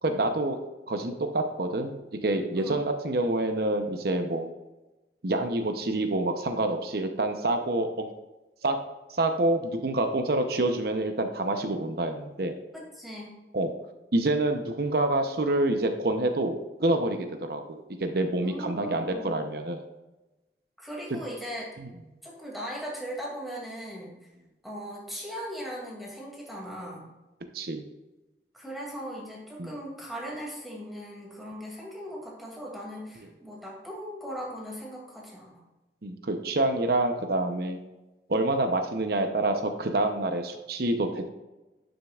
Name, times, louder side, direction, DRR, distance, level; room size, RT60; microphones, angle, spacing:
voice 1, 0.0-0.6 0.9-4.5 5.2-8.1 8.6-8.8 9.1-12.6 13.5-13.7 14.1-19.8 21.8-21.9 27.5-27.8 29.6-29.7 36.0-37.8 38.3-41.3, right 2 dB, 60° right, 6 dB, 0.8 m, -27 dB
voice 2, 12.7-13.3 18.4-19.3 20.8-21.6 22.2-24.1 24.6-27.0 28.5-35.6, equal, ahead, -4 dB, 2.4 m, -39 dB
11.0 x 6.5 x 2.4 m, 1.1 s
head